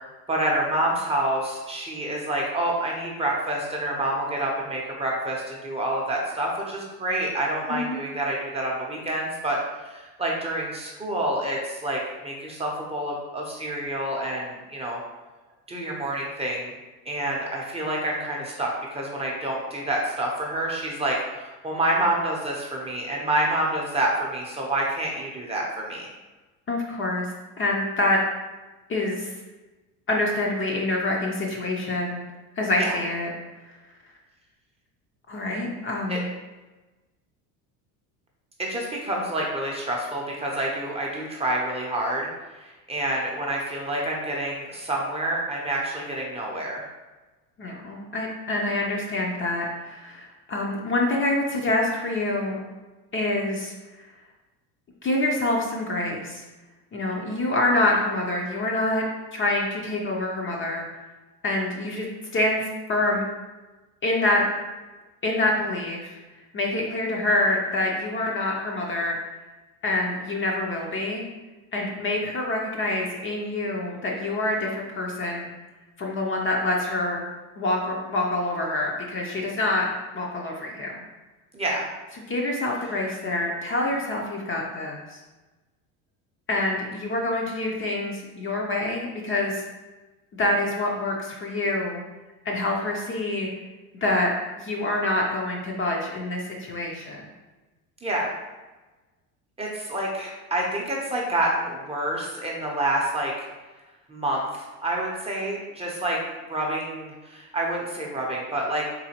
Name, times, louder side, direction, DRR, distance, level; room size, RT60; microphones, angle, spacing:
voice 1, 0.3-15.0 15.7-16.7 17.1-26.1 32.8-33.0 36.1-36.2 38.6-46.8 57.1-57.4 66.7-67.0 81.5-81.9 98.0-98.3 99.6-103.3 104.1-108.9, right 1 dB, 15° right, -2 dB, 0.7 m, -28 dB
voice 2, 7.7-8.0 26.7-27.3 27.6-28.2 28.9-29.3 30.1-32.2 32.6-33.3 35.3-36.2 47.6-52.6 53.1-53.7 55.0-56.4 56.9-59.0 59.3-60.9 61.4-63.2 64.0-64.5 65.2-66.2 66.5-69.2 69.8-71.3 71.7-75.5 76.0-77.2 77.6-79.9 80.1-81.0 82.3-85.2 86.5-89.6 90.3-92.0 92.4-93.5 94.0-94.3 94.6-97.2, left 2 dB, 30° left, -1 dB, 0.6 m, -26 dB
3.9 x 2.7 x 2.8 m, 1.2 s
supercardioid pair, 105°, 42 cm